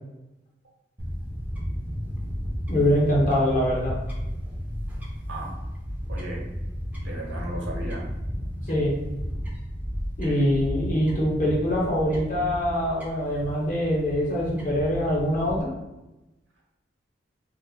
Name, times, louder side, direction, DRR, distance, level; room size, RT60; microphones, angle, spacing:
Fowl / Bird, 1.0-15.6, equal, 10° right, 0.6 m, -33 dB
voice 1, 2.7-3.9 8.7-8.9 10.2-15.7, equal, 45° left, -4 dB, 1.1 m, -24 dB
voice 2, 6.1-6.4 7.0-8.0 10.2-10.4, right 1 dB, 80° right, -2 dB, 0.9 m, -35 dB
3.1 x 2.1 x 3.7 m, 1.0 s
head